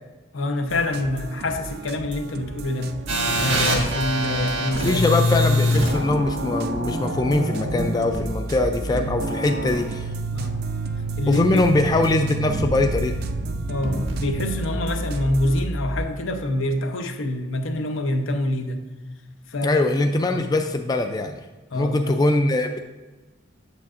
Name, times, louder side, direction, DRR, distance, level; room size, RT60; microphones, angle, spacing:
voice 1, 0.3-3.0 3.3-5.0 10.3-10.6 11.2-11.6 13.7-18.9 19.5-19.8 20.3-20.6 21.7-22.2, left 1 dB, 80° left, 6 dB, 0.7 m, -26 dB
sound 1, 0.7-15.7, right 3 dB, 50° right, 0.4 m, -37 dB
sound 2, 3.1-16.0, equal, 85° right, 1.5 m, -26 dB
voice 2, 4.8-10.1 11.3-13.2 19.6-21.3 21.8-22.8, left 2 dB, 20° left, 5 dB, 0.3 m, -22 dB
8.3 x 7.4 x 2.5 m, 1.2 s
head